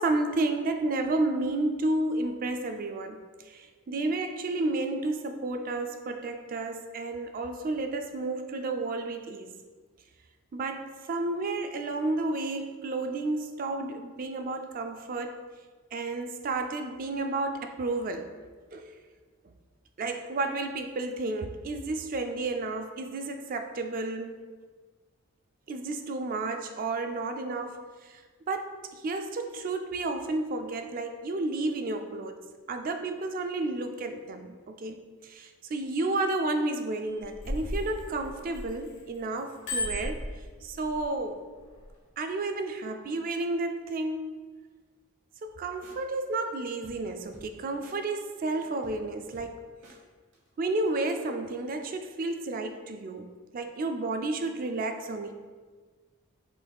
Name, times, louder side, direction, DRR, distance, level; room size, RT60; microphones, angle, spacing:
voice 1, 0.0-9.5 10.5-15.4 15.9-18.3 18.7-19.0 19.4-19.5 20.0-24.4 25.7-28.2 28.5-32.4 32.7-40.2 40.6-41.4 42.2-44.3 45.4-49.6 50.6-55.3, right 2 dB, 40° right, 6 dB, 0.3 m, -31 dB
Bicycle bell, 37.1-39.0 39.4-41.0 41.7-41.9, left 1 dB, 55° left, 1.1 m, -34 dB
sound 1, 45.4-45.6 45.8-46.0 46.8-47.6 47.8-48.0 48.3-50.0 50.3-51.0, equal, 55° right, 1.1 m, -52 dB
5.9 x 3.5 x 2.3 m, 1.5 s
head